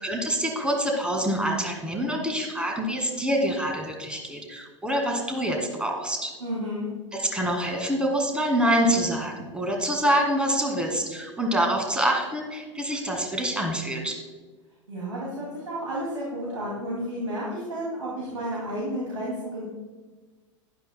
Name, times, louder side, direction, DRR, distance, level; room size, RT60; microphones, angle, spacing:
voice 1, 0.0-6.3 7.1-14.2, right 1 dB, 5° right, 2 dB, 1.9 m, -26 dB
voice 2, 6.4-6.9 14.9-19.6, equal, 75° right, -5 dB, 2.5 m, -31 dB
12.0 x 11.0 x 2.2 m, 1.3 s
figure-of-eight pair, 90°, 16 cm